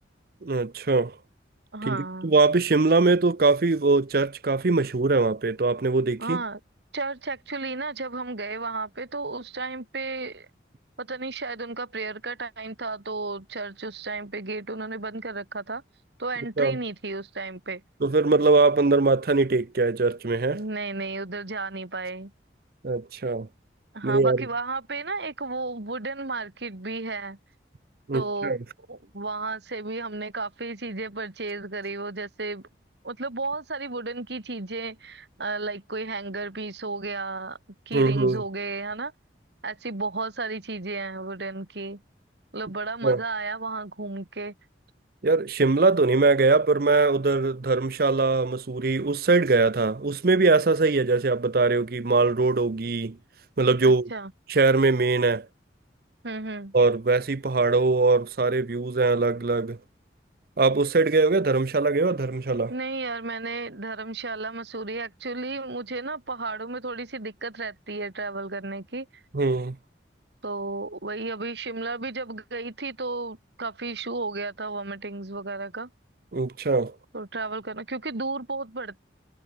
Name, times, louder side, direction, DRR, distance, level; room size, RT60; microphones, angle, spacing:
voice 1, 0.4-1.2 1.9-6.4 16.6-16.8 18.0-20.6 22.8-23.5 24.0-24.5 28.1-28.6 37.9-38.4 43.0-43.2 45.2-53.2 53.6-54.1 54.5-55.5 56.7-59.8 60.6-62.7 69.3-69.8 76.3-76.9, right 3 dB, 55° right, 0.6 m, -22 dB
voice 2, 1.7-2.3 6.2-6.6 6.9-10.5 11.0-15.8 16.2-17.8 20.5-22.3 23.9-27.4 28.1-28.6 28.9-32.6 33.0-37.6 37.9-39.1 39.6-42.0 42.5-44.5 51.1-51.2 53.8-54.3 56.2-56.7 62.7-69.2 70.4-75.9 77.1-79.0, right 3 dB, 70° right, 2.1 m, -33 dB
head